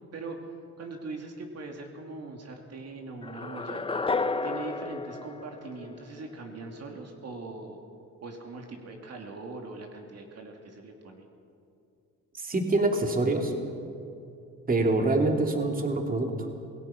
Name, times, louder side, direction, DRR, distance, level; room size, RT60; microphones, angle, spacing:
voice 1, 0.1-3.8 4.4-7.8 8.2-11.2, right 3 dB, 55° right, 2 dB, 2.7 m, -41 dB
sound 1, 3.2-6.3, left 3 dB, 20° left, 0.7 m, -32 dB
voice 2, 12.4-13.5 14.7-16.5, right 2 dB, 30° right, 2 dB, 2.9 m, -25 dB
27.0 x 18.0 x 5.9 m, 2.6 s
cardioid pair, 90°, 30 cm